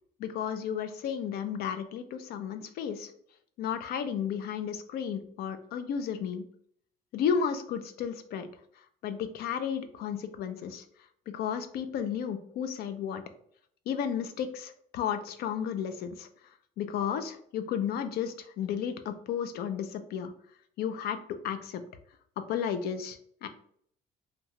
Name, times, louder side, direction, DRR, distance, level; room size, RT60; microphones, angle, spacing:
voice 1, 0.2-3.1 3.6-6.4 7.1-8.5 9.0-10.8 11.3-13.2 13.9-16.3 16.8-20.3 20.8-21.8 22.5-23.5, left 8 dB, 70° left, 9 dB, 0.4 m, -33 dB
2.7 x 2.1 x 2.9 m, 0.65 s
cardioid pair, 110°, 17 cm